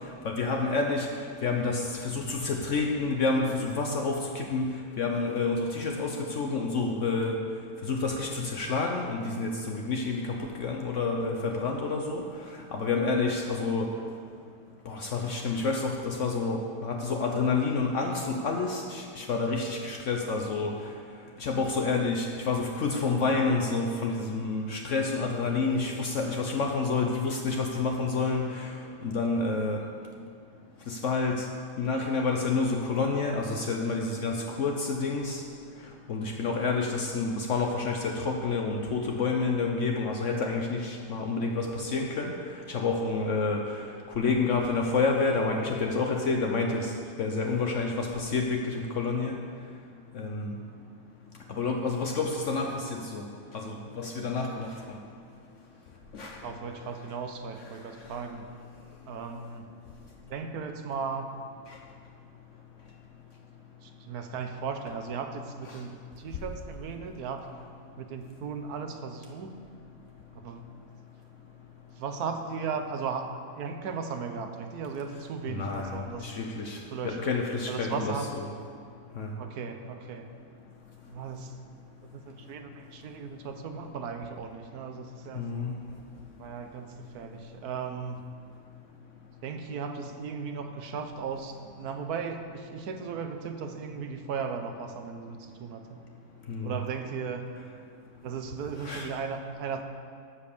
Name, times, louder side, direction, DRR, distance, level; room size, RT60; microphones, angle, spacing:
voice 1, 0.2-1.1 1.4-7.4 7.9-12.2 12.7-13.9 14.9-20.7 21.4-28.7 29.0-29.8 30.9-31.5 31.8-35.4 36.1-42.3 42.7-43.6 44.2-46.9 47.2-49.4 50.1-50.5 51.6-53.2 53.5-54.7 56.1-56.4 65.7-65.8 75.5-76.8 77.0-78.5 79.2-79.3 85.3-85.7 96.5-96.8 98.8-99.1, left 4 dB, 60° left, 2 dB, 1.0 m, -29 dB
voice 2, 56.4-58.5 59.1-59.7 60.3-61.3 63.8-67.5 68.0-69.5 70.3-70.7 72.0-73.3 73.5-76.3 76.9-77.3 77.7-78.3 79.4-80.3 81.1-81.6 82.1-85.5 86.4-88.2 89.4-96.0 96.6-97.5 98.2-99.8, right 5 dB, 90° right, 6 dB, 1.4 m, -36 dB
12.5 x 5.3 x 6.7 m, 2.2 s
omnidirectional pair, 1.6 m